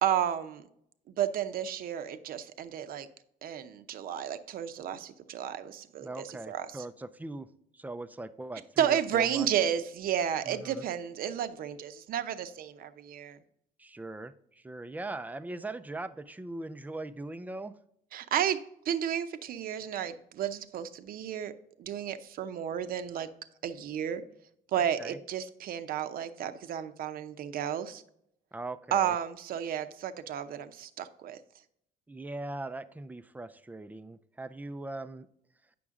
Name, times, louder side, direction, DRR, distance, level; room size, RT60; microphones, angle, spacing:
voice 1, 0.0-0.6 1.2-3.1 3.4-6.7 8.8-13.4 18.1-21.5 21.8-23.3 23.6-24.2 24.7-28.0 28.9-31.4, right 9 dB, 60° right, 10 dB, 0.7 m, -32 dB
voice 2, 6.0-7.5 7.7-9.5 10.5-10.8 13.8-17.7 24.7-25.2 28.5-29.2 32.1-35.3, right 2 dB, 10° right, 12 dB, 0.4 m, -40 dB
8.5 x 6.0 x 3.7 m, 0.74 s
cardioid pair, 110°, 17 cm